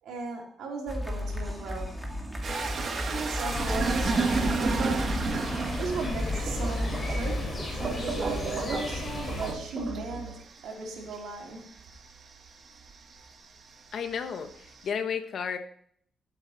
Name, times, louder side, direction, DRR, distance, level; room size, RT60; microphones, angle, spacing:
voice 1, 0.0-1.9 3.1-5.0 5.8-10.3 10.6-11.6, right 3 dB, 75° right, -1 dB, 3.9 m, -36 dB
sound 1, 0.9-7.5, left 1 dB, 5° right, 2.1 m, -34 dB
sound 2, 2.4-13.4 13.7-14.9, right 4 dB, 40° right, 1.5 m, -33 dB
sound 3, 3.5-9.5, left 2 dB, 20° left, 4.4 m, -34 dB
voice 2, 13.9-15.6, left 7 dB, 55° left, 7 dB, 1.4 m, -32 dB
13.5 x 8.1 x 4.4 m, 0.63 s
cardioid pair, 130°, 0 cm